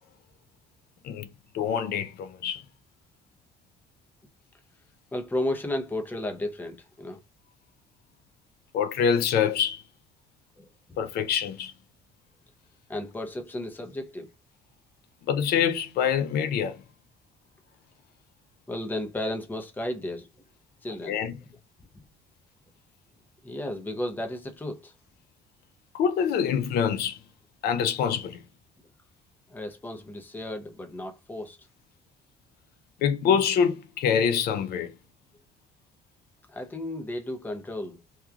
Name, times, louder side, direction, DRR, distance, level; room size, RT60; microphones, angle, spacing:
voice 1, 1.5-2.6 8.7-9.8 11.0-11.7 15.3-16.8 21.1-21.3 25.9-27.2 27.6-28.4 33.0-34.9, left 7 dB, 70° left, 0.5 m, -25 dB
voice 2, 5.1-7.2 10.6-11.0 12.9-14.3 18.7-20.3 20.8-21.2 21.9-22.0 23.4-24.9 29.5-31.6 36.5-38.0, left 1 dB, 10° left, 0.6 m, -33 dB
2.9 x 2.3 x 2.3 m
cardioid pair, 110°, 17 cm